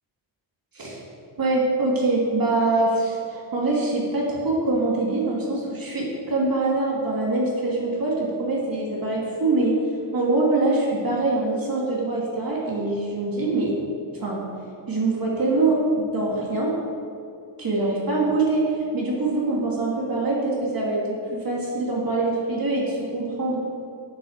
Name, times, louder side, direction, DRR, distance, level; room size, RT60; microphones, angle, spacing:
voice 1, 1.4-9.8 10.1-13.7 14.1-14.4 14.9-16.8 17.6-23.6, right 2 dB, 45° right, -4 dB, 2.4 m, -24 dB
9.6 x 8.2 x 6.5 m, 2.6 s
wide cardioid pair, 135°, 47 cm